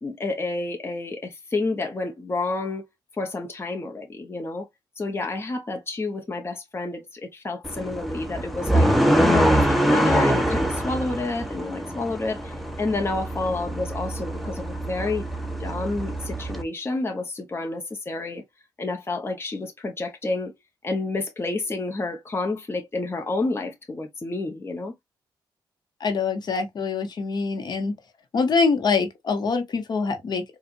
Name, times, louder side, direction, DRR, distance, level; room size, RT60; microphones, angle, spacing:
voice 1, 0.0-2.9 3.2-4.7 5.0-8.9 9.3-12.5 12.8-15.3 15.6-18.4 18.8-20.5 20.8-24.9, left 3 dB, 30° left, 1.0 m, -29 dB
sound 1, 7.6-16.6, right 1 dB, ahead, 0.9 m, -24 dB
voice 2, 26.0-28.0 28.3-30.4, left 4 dB, 60° left, 1.0 m, -24 dB
4.4 x 2.4 x 2.5 m
cardioid pair, 80°, 8 cm